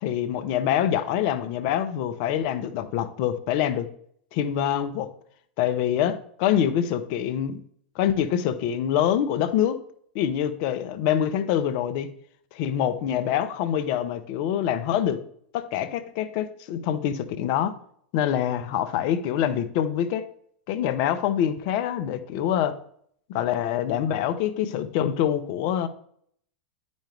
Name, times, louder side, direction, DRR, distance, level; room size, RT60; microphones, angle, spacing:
voice 1, 0.0-3.9 4.3-5.1 5.6-7.6 8.0-9.8 10.1-12.1 12.5-15.2 15.5-17.7 18.1-20.2 20.7-22.8 23.3-25.9, left 10 dB, 55° left, 11 dB, 0.8 m, -25 dB
10.5 x 5.2 x 3.4 m, 0.64 s
hypercardioid pair, 100°, 5 cm